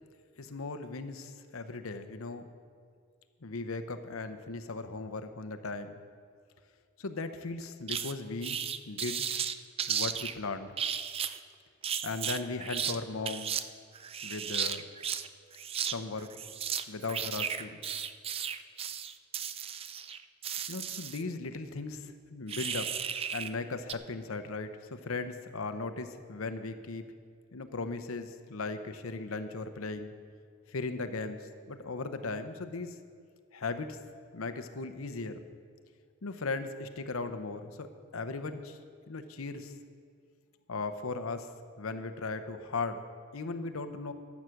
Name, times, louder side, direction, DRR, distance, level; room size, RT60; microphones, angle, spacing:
voice 1, 0.4-2.5 3.4-6.0 7.0-9.2 9.9-10.7 12.0-13.5 14.2-14.8 15.8-16.3 16.9-17.8 20.7-23.0 23.3-27.0 27.5-30.1 30.7-33.0 33.5-34.0 34.3-35.4 36.2-37.9 38.1-38.8 39.1-39.7 40.7-41.5 41.8-43.1 43.3-44.1, left 3 dB, 80° left, 9 dB, 0.8 m, -37 dB
sound 1, 7.9-8.1 8.4-10.3 10.8-11.4 11.8-13.0 13.2-13.6 13.9-15.3 15.5-15.9 16.2-21.2 22.5-23.5 23.9-24.0, right 8 dB, 30° right, 0.4 m, -34 dB
14.0 x 7.2 x 6.4 m, 2.1 s
head